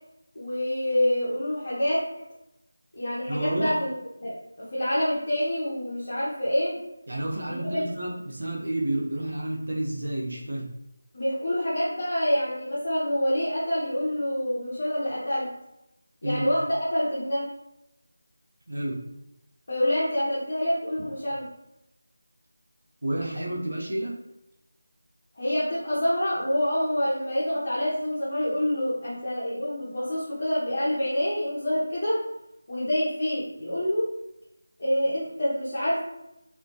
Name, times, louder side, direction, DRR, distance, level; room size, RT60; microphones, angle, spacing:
voice 1, 0.3-2.3 2.9-3.9 4.2-6.8 7.5-7.8 11.1-15.5 16.2-17.5 19.7-21.5 25.3-32.2 32.7-34.1 34.8-36.0, equal, 40° left, -8 dB, 0.7 m, -27 dB
voice 2, 3.3-3.8 7.1-10.7 16.2-16.5 18.7-19.0 23.0-24.2, right 1 dB, 55° right, -3 dB, 0.6 m, -30 dB
2.2 x 2.1 x 2.7 m, 0.87 s
figure-of-eight pair, 175°, 0 cm